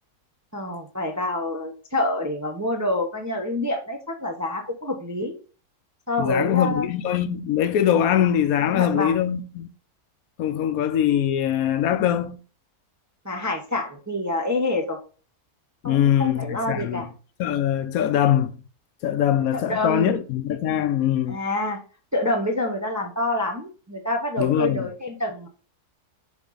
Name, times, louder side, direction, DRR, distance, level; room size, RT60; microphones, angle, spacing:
voice 1, 0.5-5.3 6.1-6.9 8.6-9.2 13.2-15.0 15.8-17.1 19.5-20.2 21.3-21.8 22.1-25.5, left 2 dB, 20° right, 0.5 m, -27 dB
voice 2, 6.2-9.7 10.4-12.4 15.8-17.0 17.4-18.5 19.0-21.4 24.4-24.9, left 10 dB, 75° left, 1.0 m, -22 dB
7.2 x 3.8 x 3.9 m
omnidirectional pair, 1.6 m